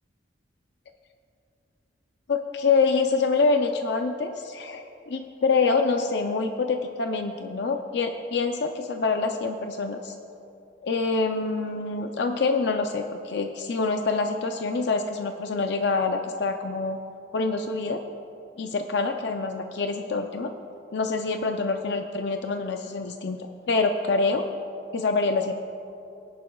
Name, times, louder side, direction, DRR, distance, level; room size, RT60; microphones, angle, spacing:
voice 1, 2.3-10.1 10.8-17.0 17.3-18.0 18.6-20.5 20.9-24.5 24.9-25.5, left 4 dB, 65° left, 5 dB, 0.5 m, -26 dB
20.0 x 10.5 x 2.3 m, 2.7 s
head